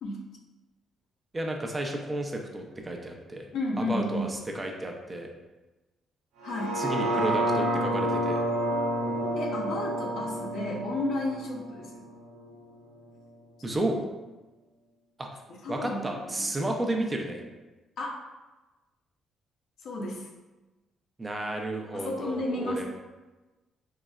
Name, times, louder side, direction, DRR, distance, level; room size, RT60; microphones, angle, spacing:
voice 1, 1.3-3.4 3.8-5.3 6.7-8.4 13.6-14.0 15.2-15.3 15.7-17.4 21.2-22.8, right 1 dB, 20° right, 2 dB, 0.4 m, -32 dB
voice 2, 3.5-4.3 6.4-6.8 9.4-12.0 13.7-13.8 15.5-16.5 18.0-18.2 19.8-20.3 21.9-22.8, left 2 dB, 75° left, 0 dB, 0.5 m, -33 dB
sound 1, 6.4-12.5 13.0-13.1, right 1 dB, 85° right, 0.4 m, -29 dB
3.8 x 2.0 x 2.3 m, 1.1 s
cardioid pair, 90°, 0 cm